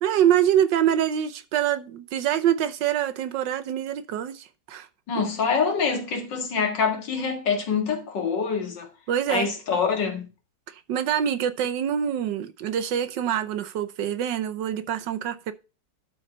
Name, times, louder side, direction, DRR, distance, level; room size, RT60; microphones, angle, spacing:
voice 1, 0.0-4.9 9.1-9.5 10.9-15.5, right 10 dB, 80° right, 1.5 m, -25 dB
voice 2, 5.1-8.9 9.3-10.3, left 5 dB, 75° left, 2.5 m, -25 dB
12.0 x 4.5 x 5.4 m
omnidirectional pair, 2.0 m